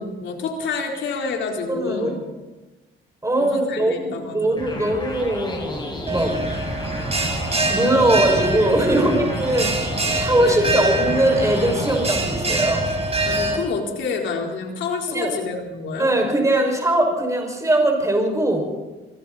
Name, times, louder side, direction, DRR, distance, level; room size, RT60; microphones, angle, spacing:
voice 1, 0.0-2.2 3.4-4.8 8.8-9.2 10.4-10.8 13.3-16.1, left 4 dB, 70° left, 1 dB, 4.3 m, -29 dB
voice 2, 1.7-2.1 3.2-6.4 7.7-9.8 10.1-12.9 15.1-15.3 16.0-18.6, right 1 dB, 15° right, 2 dB, 6.3 m, -20 dB
sound 1, 4.6-12.2, left 2 dB, 25° left, 6.7 m, -33 dB
Bell, 6.1-13.6, right 2 dB, 30° right, 5.1 m, -24 dB
25.5 x 24.5 x 4.3 m, 1.1 s
cardioid pair, 90°, 20 cm